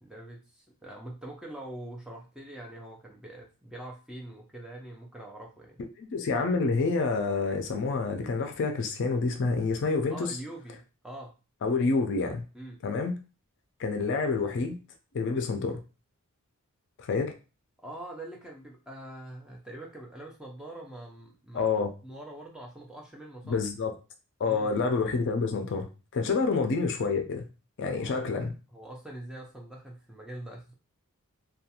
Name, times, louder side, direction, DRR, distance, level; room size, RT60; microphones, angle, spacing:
voice 1, 0.0-5.9 10.1-11.4 12.5-12.8 17.8-21.7 22.0-23.6 24.5-24.7 27.9-28.4 28.7-30.7, right 1 dB, 5° right, 0.5 m, -44 dB
voice 2, 6.0-10.4 11.6-12.4 12.8-13.2 13.8-14.8 15.1-15.8 17.0-17.3 21.5-21.9 23.5-23.9 24.4-27.5 27.8-28.5, left 4 dB, 55° left, 0.4 m, -28 dB
2.5 x 2.2 x 2.8 m
head